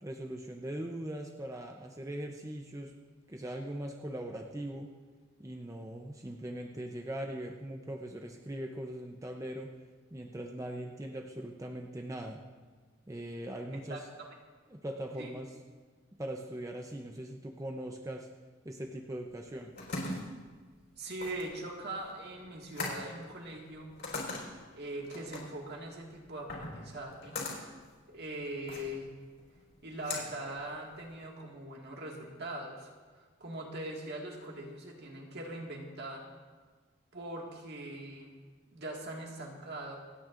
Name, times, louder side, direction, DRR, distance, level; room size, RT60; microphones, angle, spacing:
voice 1, 0.0-2.9 3.3-4.9 5.4-9.7 10.1-12.4 13.1-14.1 14.7-15.5 16.2-18.3 18.6-19.7, right 1 dB, 15° right, 2 dB, 0.6 m, -40 dB
voice 2, 13.9-14.3 15.2-15.3 21.0-23.9 24.7-27.4 28.1-29.2 29.8-36.3 37.1-38.3 38.7-40.0, right 1 dB, 55° right, 0 dB, 1.9 m, -41 dB
sound 1, 19.3-31.2, left 2 dB, 60° left, 3.9 m, -42 dB
27.0 x 9.3 x 2.5 m, 1.5 s
head